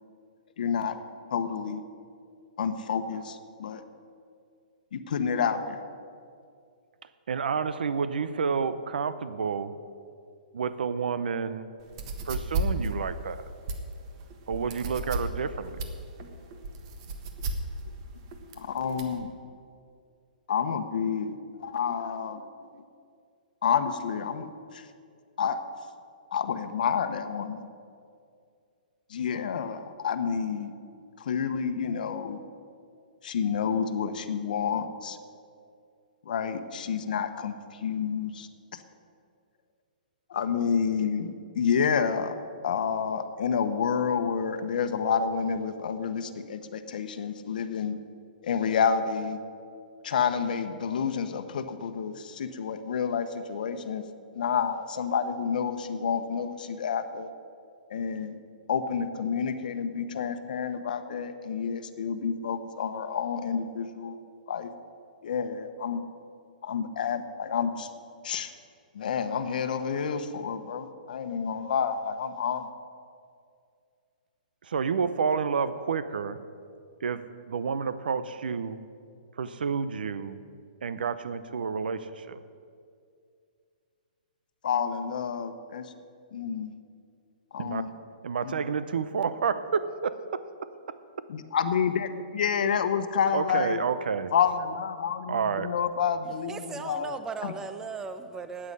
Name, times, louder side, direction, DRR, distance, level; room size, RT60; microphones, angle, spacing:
voice 1, 0.6-1.0 1.3-1.8 2.6-3.8 4.9-5.8 18.6-19.3 20.5-22.4 22.7-22.8 23.6-24.9 25.4-25.6 26.3-27.7 29.1-30.7 31.2-32.4 33.2-35.2 36.2-38.8 40.3-42.4 42.6-48.0 48.4-49.4 50.0-54.0 54.3-57.3 57.9-58.4 58.7-64.2 64.5-64.7 65.2-66.0 66.6-67.9 68.2-68.5 68.9-72.7 84.6-85.9 86.3-86.8 87.5-87.9 88.4-88.5 91.3-93.8 94.3-97.2 97.4-97.5, left 7 dB, 65° left, 8 dB, 1.0 m, -29 dB
voice 2, 7.3-9.7 10.5-11.7 12.3-13.5 14.5-15.8 74.6-76.4 77.0-78.8 79.4-80.4 80.8-82.4 87.6-87.9 88.2-90.4 90.9-91.0 93.3-94.3 95.3-95.7, right 6 dB, 80° right, 13 dB, 0.7 m, -30 dB
sound 1, 11.8-19.2, right 2 dB, 35° right, 1.4 m, -34 dB
voice 3, 96.3-98.7, right 4 dB, 10° right, 9 dB, 0.7 m, -37 dB
9.4 x 8.8 x 9.9 m, 2.3 s
hypercardioid pair, 155°, 5 cm